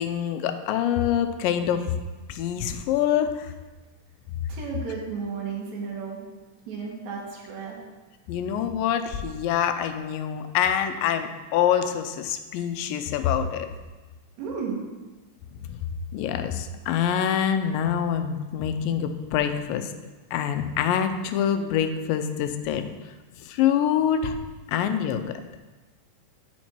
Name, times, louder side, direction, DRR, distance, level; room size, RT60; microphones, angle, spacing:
voice 1, 0.0-1.9 2.3-3.5 8.3-13.7 15.6-15.8 16.1-19.9 20.3-22.8 23.4-24.4 24.7-25.2, left 9 dB, 85° left, 9 dB, 2.3 m, -25 dB
voice 2, 4.5-6.2 6.7-7.8 14.4-14.8, right 5 dB, 60° right, -3 dB, 2.7 m, -33 dB
11.0 x 4.4 x 4.5 m, 1.2 s
omnidirectional pair, 3.9 m